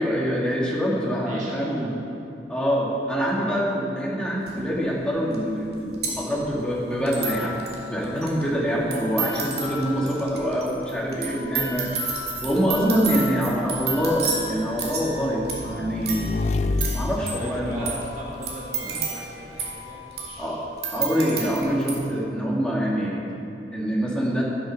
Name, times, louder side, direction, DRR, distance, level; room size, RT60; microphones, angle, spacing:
voice 1, 0.0-1.9 2.5-16.3 16.9-17.9 18.8-18.9 20.4-20.6 20.9-23.2 23.7-24.4, equal, 5° left, -5 dB, 2.3 m, -25 dB
voice 2, 1.3-1.8 17.2-20.8, right 1 dB, 45° right, -4 dB, 1.6 m, -39 dB
sound 1, 4.5-4.6 5.3-5.4 5.6-22.0, right 4 dB, 60° right, 2.4 m, -32 dB
Motorcycle / Engine, 11.6-18.7, left 3 dB, 40° left, 0.4 m, -31 dB
11.0 x 10.5 x 6.5 m, 3.0 s
head